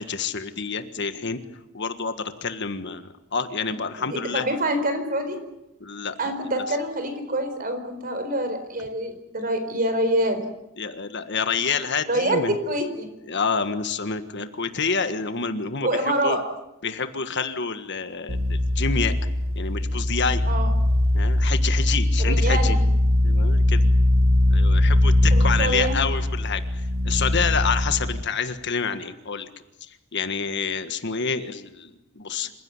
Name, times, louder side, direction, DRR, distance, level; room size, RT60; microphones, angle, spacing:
voice 1, 0.0-1.4 1.7-4.5 5.8-6.3 10.8-12.6 13.3-16.4 16.8-19.1 19.5-20.4 21.1-22.8 23.2-23.8 24.5-26.6 27.0-29.5 30.1-32.5, left 5 dB, 55° left, 9 dB, 1.6 m, -28 dB
voice 2, 4.0-5.4 6.2-10.4 12.1-13.1 15.8-16.4 20.5-20.7 22.2-22.8 25.3-26.0, right 1 dB, 45° right, 8 dB, 4.5 m, -26 dB
sound 1, 18.3-28.2, left 1 dB, 70° right, 2.1 m, -21 dB
27.5 x 16.5 x 9.7 m, 0.90 s
head